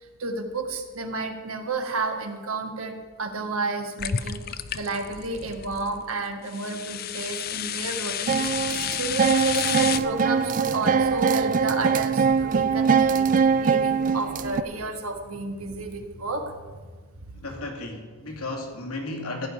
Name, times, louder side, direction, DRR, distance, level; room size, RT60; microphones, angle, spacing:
voice 1, 0.2-4.4 4.7-13.3 13.6-16.8 17.2-17.4, right 3 dB, 75° right, 4 dB, 1.7 m, -31 dB
sound 1, 4.0-6.0 6.5-10.0, left 9 dB, 45° left, 0.5 m, -31 dB
sound 2, 8.3-14.6, right 6 dB, 35° right, 0.3 m, -22 dB
voice 2, 17.3-19.5, left 2 dB, 85° left, 1 dB, 2.4 m, -34 dB
15.5 x 5.3 x 9.6 m, 1.4 s
head